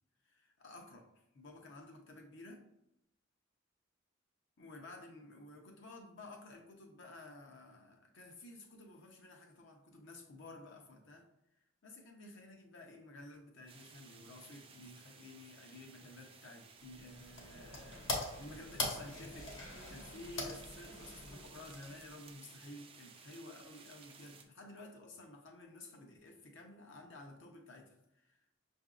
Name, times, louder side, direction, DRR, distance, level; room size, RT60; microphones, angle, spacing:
voice 1, 0.3-2.6 4.6-11.3 11.8-19.5 19.9-28.4, left 2 dB, 65° left, 2 dB, 0.7 m, -53 dB
sound 1, 13.7-24.4, right 5 dB, 25° right, 0.3 m, -58 dB
sound 2, 16.9-22.3, left 2 dB, 80° left, 1.2 m, -43 dB
5.7 x 2.6 x 2.4 m, 0.83 s
head